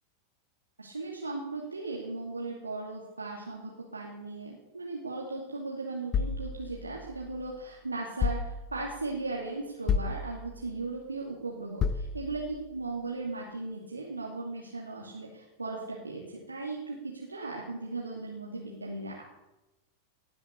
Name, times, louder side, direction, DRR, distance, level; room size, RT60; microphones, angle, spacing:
voice 1, 0.8-19.2, right 3 dB, 80° right, -3 dB, 2.5 m, -37 dB
sound 1, 6.1-7.5 8.2-9.0 9.9-10.8 11.8-12.6, left 5 dB, 30° left, 0.8 m, -32 dB
18.0 x 7.7 x 8.3 m, 1.0 s
figure-of-eight pair, 90°, 0 cm